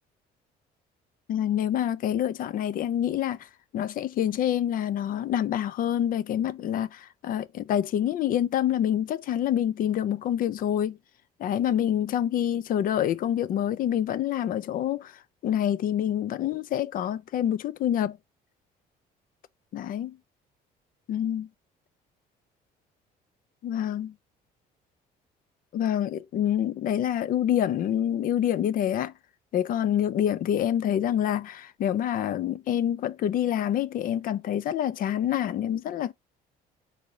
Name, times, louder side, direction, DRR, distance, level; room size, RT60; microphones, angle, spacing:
voice 1, 1.3-3.4 3.7-11.0 11.4-15.1 15.4-18.2 19.7-20.2 21.1-21.5 23.6-24.1 25.7-29.1 29.5-36.1, left 10 dB, 55° left, 0.5 m, -27 dB
4.6 x 2.7 x 3.8 m
cardioid pair, 110°, 17 cm